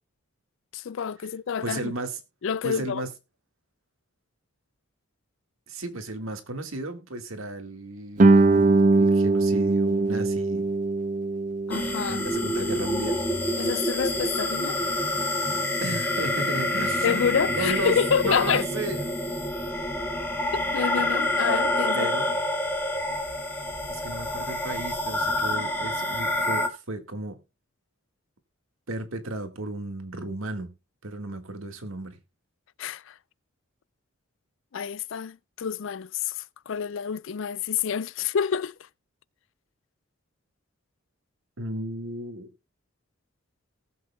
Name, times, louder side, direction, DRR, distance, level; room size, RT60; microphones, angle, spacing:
voice 1, 0.7-1.9 2.4-3.0 11.7-12.2 13.6-14.8 17.0-18.6 20.5-22.1 32.8-33.1 34.7-38.7, left 7 dB, 65° left, 0.4 m, -28 dB
voice 2, 1.6-2.2 2.6-3.1 5.7-10.7 12.1-13.3 15.8-18.0 18.2-19.1 21.9-22.3 23.9-27.4 28.9-30.7 31.0-32.2 41.6-42.5, right 2 dB, 80° right, 1.8 m, -34 dB
Guitar, 8.2-13.6, right 3 dB, 35° right, 0.5 m, -22 dB
sound 1, 11.7-26.7, left 1 dB, 10° left, 1.8 m, -27 dB
18.5 x 7.9 x 2.3 m
head